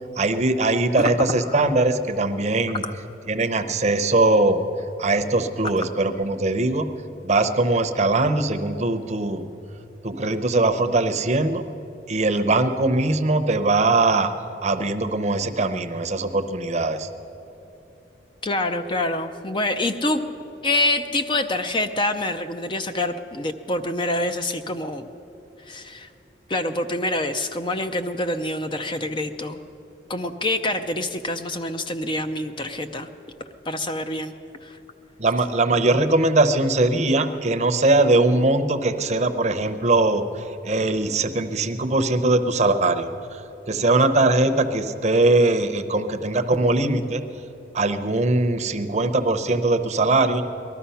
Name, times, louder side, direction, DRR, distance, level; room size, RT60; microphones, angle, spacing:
voice 1, 0.2-2.8 3.3-4.6 5.0-6.9 7.2-9.5 10.0-11.6 12.1-14.3 14.6-17.1 35.2-43.4 43.7-47.2 47.7-50.4, right 2 dB, 40° right, 7 dB, 0.7 m, -21 dB
voice 2, 1.0-1.6 2.8-2.9 18.4-20.2 20.6-25.1 25.7-26.1 26.5-29.6 30.1-33.1 33.7-34.3 34.6-34.8, left 2 dB, 25° left, 8 dB, 0.5 m, -26 dB
19.0 x 12.5 x 5.7 m, 3.0 s
head